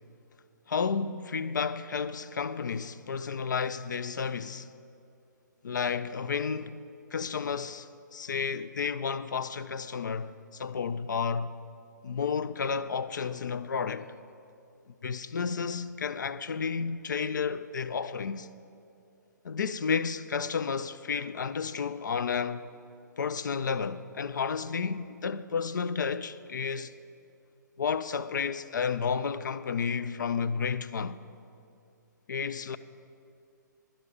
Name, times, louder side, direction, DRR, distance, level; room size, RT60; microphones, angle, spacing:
voice 1, 0.7-4.7 5.6-6.8 7.1-11.5 12.0-14.1 15.0-18.5 19.4-22.7 23.2-26.9 27.8-31.2 32.3-32.8, left 6 dB, 70° left, 0.5 m, -31 dB
11.5 x 10.5 x 5.0 m
figure-of-eight pair, 135°, 10 cm